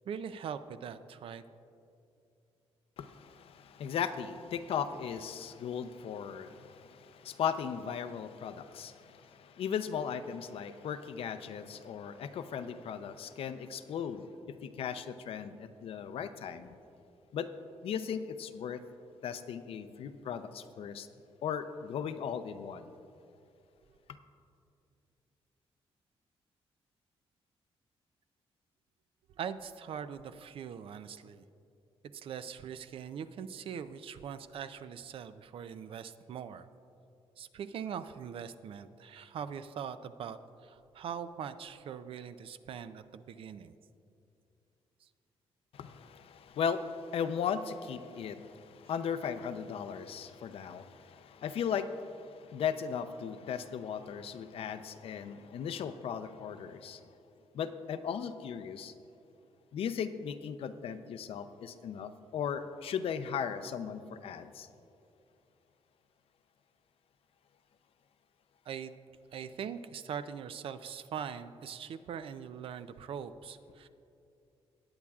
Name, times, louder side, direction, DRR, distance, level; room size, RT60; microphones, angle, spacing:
voice 1, 0.1-1.4 29.4-31.4 32.1-36.7 37.4-43.7 68.7-68.9 69.3-73.9, right 7 dB, 60° right, 11 dB, 0.4 m, -42 dB
voice 2, 3.0-16.8 17.3-17.5 17.8-18.8 19.2-21.1 21.4-22.9 45.7-57.1 57.5-58.9 59.7-64.7, left 7 dB, 65° left, 11 dB, 0.5 m, -37 dB
19.0 x 8.7 x 2.4 m, 2.6 s
cardioid pair, 135°, 10 cm